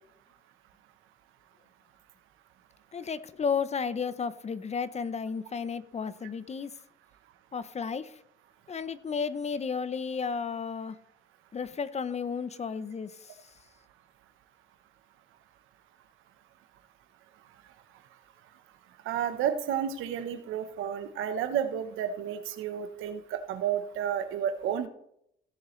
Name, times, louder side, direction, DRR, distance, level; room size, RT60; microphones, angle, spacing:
voice 1, 2.9-6.7 7.5-8.2 8.7-11.0 11.5-13.4, left 6 dB, 35° left, 15 dB, 0.6 m, -33 dB
voice 2, 19.1-24.9, right 9 dB, 90° right, 9 dB, 1.0 m, -31 dB
16.5 x 7.2 x 3.2 m, 0.75 s
cardioid pair, 90°, 20 cm